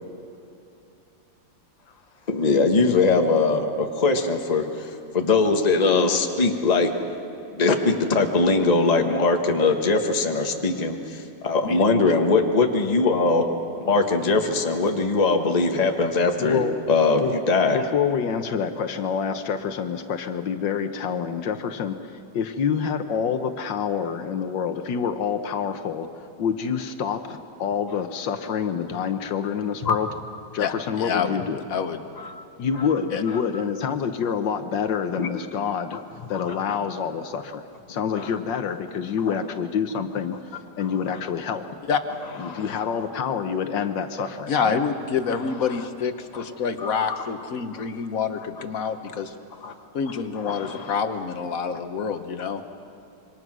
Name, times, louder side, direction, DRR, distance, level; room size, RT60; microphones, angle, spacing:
voice 1, 2.3-6.9 7.5-13.5 13.8-16.6 16.9-17.8 29.8-29.9 32.2-32.4 35.2-35.3 36.3-36.5 38.1-38.3 41.1-41.2 42.4-42.8 45.7-45.8 46.3-46.4 46.8-47.3 47.7-47.8 49.6-49.7 50.3-51.0, left 3 dB, 25° left, 4 dB, 1.3 m, -22 dB
voice 2, 16.4-16.8 17.2-17.3 17.7-30.1 30.5-31.6 32.6-36.0 36.3-37.6 37.9-40.4 40.8-41.6 42.4-44.8, left 7 dB, 75° left, 8 dB, 1.7 m, -27 dB
voice 3, 30.6-31.4 31.7-32.0 33.1-33.2 41.9-42.0 44.5-49.3 49.9-52.6, left 6 dB, 50° left, 8 dB, 1.5 m, -27 dB
27.0 x 24.0 x 6.2 m, 2.7 s
omnidirectional pair, 2.0 m